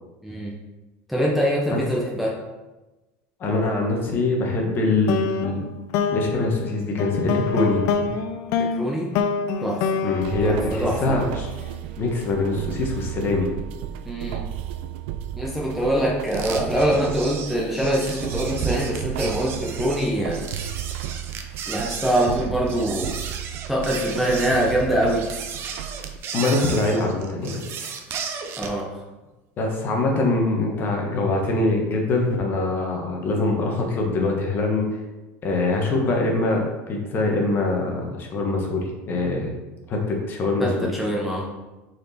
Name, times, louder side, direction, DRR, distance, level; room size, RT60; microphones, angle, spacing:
voice 1, 0.2-0.6 1.1-2.4 8.6-9.1 9.6-10.0 10.4-11.2 14.0-14.4 15.4-20.4 21.7-23.1 23.7-25.3 28.6-28.9 40.6-41.4, right 1 dB, ahead, -4 dB, 0.8 m, -24 dB
voice 2, 3.4-5.6 6.1-7.8 10.0-11.5 12.0-13.5 26.3-27.9 29.6-34.8 35.4-39.5 39.9-40.9, left 2 dB, 35° left, 1 dB, 1.3 m, -23 dB
sound 1, 5.1-11.5, left 6 dB, 55° left, 0.5 m, -26 dB
sound 2, 10.2-26.2, right 10 dB, 80° right, 0.4 m, -33 dB
sound 3, 16.3-28.8, right 6 dB, 40° right, 0.7 m, -34 dB
6.3 x 4.5 x 4.3 m, 1.1 s
cardioid pair, 150°, 6 cm